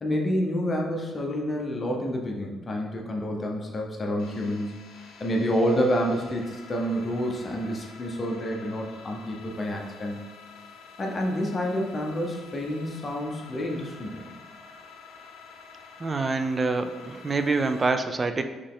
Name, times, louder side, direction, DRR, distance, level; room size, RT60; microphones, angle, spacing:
voice 1, 0.0-4.8 5.2-10.2 11.0-14.3, equal, 35° left, 0 dB, 0.7 m, -28 dB
sound 1, 4.2-17.9, left 4 dB, 85° left, 0.7 m, -48 dB
voice 2, 16.0-18.4, right 3 dB, 30° right, 8 dB, 0.4 m, -26 dB
4.0 x 3.2 x 3.7 m, 1.3 s
cardioid pair, 90°, 0 cm